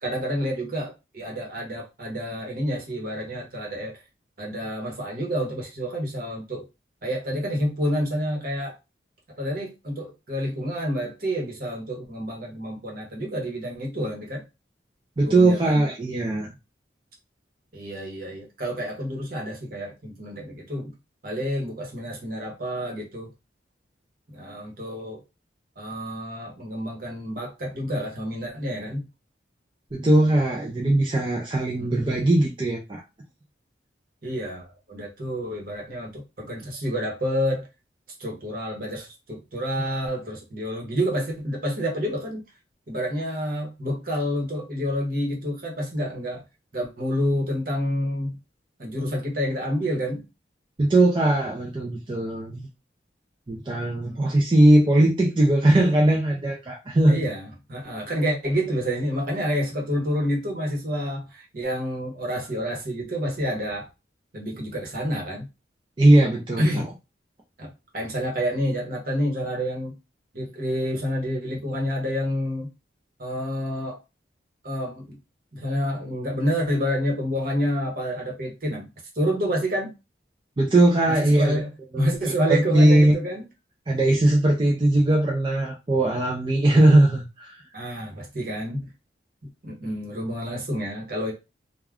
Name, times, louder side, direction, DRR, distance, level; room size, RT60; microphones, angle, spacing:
voice 1, 0.0-4.0 4.4-6.6 7.0-8.8 9.4-14.4 15.2-15.8 17.7-20.9 21.2-23.3 24.3-25.2 25.8-29.1 31.8-32.1 34.2-37.7 38.2-42.4 42.9-46.4 46.7-48.4 48.8-50.3 54.0-54.2 57.1-63.9 64.3-65.5 66.6-66.9 67.6-69.9 70.3-72.7 73.2-74.0 74.6-75.2 75.5-78.9 79.2-79.9 81.1-83.4 87.7-88.9 89.6-91.3, equal, 50° right, 0.9 m, -28 dB
voice 2, 15.2-16.5 29.9-33.0 50.8-52.7 53.5-57.2 66.0-66.9 80.6-81.6 81.9-82.1 82.5-83.1 83.9-87.6, right 1 dB, 25° right, 0.4 m, -19 dB
2.4 x 2.2 x 3.4 m
head